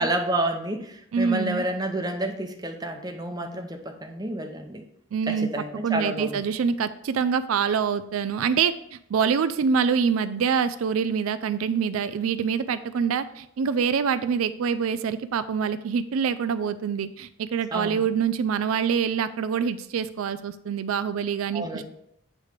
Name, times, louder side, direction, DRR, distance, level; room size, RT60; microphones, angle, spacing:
voice 1, 0.0-4.8 5.3-6.4 17.7-18.1 21.5-21.8, right 1 dB, 20° right, 3 dB, 0.7 m, -29 dB
voice 2, 1.1-1.6 5.1-5.5 5.8-21.8, right 6 dB, 85° right, 13 dB, 0.4 m, -25 dB
8.3 x 3.2 x 5.0 m, 0.73 s
head